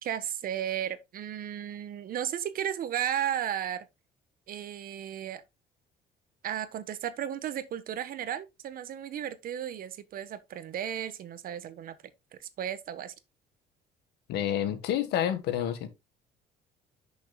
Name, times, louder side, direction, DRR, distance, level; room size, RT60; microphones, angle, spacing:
voice 1, 0.0-3.8 4.5-5.4 6.4-12.0 12.4-13.1, right 10 dB, 60° right, 1.2 m, -34 dB
voice 2, 14.3-15.9, left 10 dB, 85° left, 1.6 m, -29 dB
10.5 x 6.3 x 2.3 m
cardioid pair, 110°, 17 cm